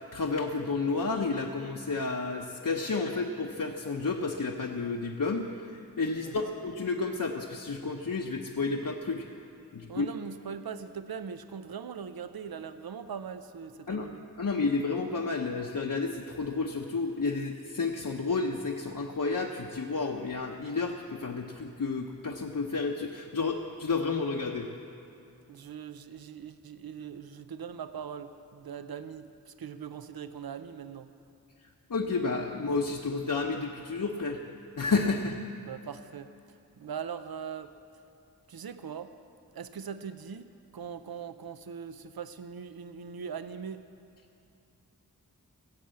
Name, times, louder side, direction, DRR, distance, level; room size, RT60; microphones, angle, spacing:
voice 1, 0.1-5.7 6.0-9.3 9.7-10.1 13.9-14.1 14.4-24.7 31.9-34.4 34.8-35.4, left 4 dB, 60° left, 0 dB, 0.8 m, -31 dB
voice 2, 6.2-6.5 9.9-14.2 25.5-31.1 35.6-36.3 36.7-37.7 38.5-39.1 39.5-43.8, right 7 dB, 80° right, 11 dB, 0.5 m, -41 dB
16.5 x 7.4 x 7.5 m, 2.5 s
wide cardioid pair, 55°, 36 cm